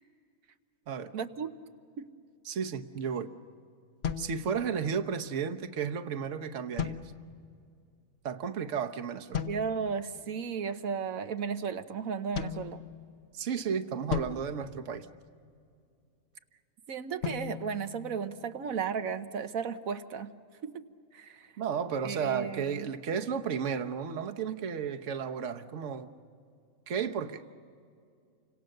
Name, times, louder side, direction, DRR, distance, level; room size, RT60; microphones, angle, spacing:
voice 1, 1.1-1.5 2.0-2.1 9.4-12.8 16.9-20.3 20.6-20.8 21.1-21.5 22.0-22.9, right 6 dB, 85° right, 10 dB, 1.4 m, -34 dB
voice 2, 2.4-3.3 4.2-7.0 8.2-9.4 13.3-15.1 21.3-26.1 26.9-27.4, right 7 dB, 65° right, 6 dB, 1.3 m, -33 dB
sound 1, 4.0-5.1 6.8-7.6 9.3-10.0 12.4-13.4 14.1-15.6 17.2-18.7, left 8 dB, 55° left, 1.2 m, -38 dB
30.0 x 25.5 x 6.6 m, 2.3 s
omnidirectional pair, 1.4 m